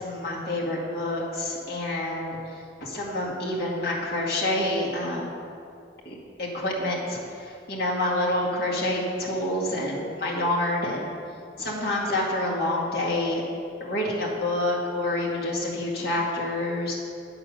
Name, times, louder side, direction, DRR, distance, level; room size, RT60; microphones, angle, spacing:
voice 1, 0.0-5.3 6.1-11.1 11.6-13.4 13.8-17.0, left 1 dB, 60° left, -4 dB, 2.1 m, -28 dB
8.7 x 6.7 x 6.6 m, 2.4 s
head